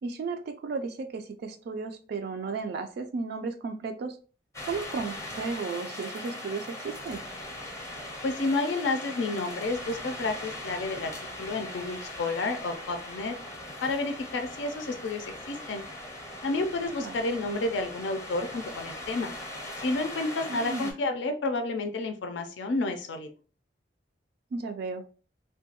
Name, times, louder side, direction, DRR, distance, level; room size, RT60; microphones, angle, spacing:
voice 1, 0.0-4.2 4.6-7.2 17.0-17.2 20.5-20.9 24.5-25.1, right 4 dB, 60° right, 7 dB, 0.3 m, -34 dB
sound 1, 4.5-20.9, left 1 dB, 15° left, 0.6 m, -40 dB
voice 2, 8.2-11.1 11.4-13.4 13.8-15.8 16.4-19.3 19.8-23.3, left 2 dB, 75° left, 6 dB, 0.4 m, -30 dB
2.9 x 2.2 x 2.8 m, 0.37 s
head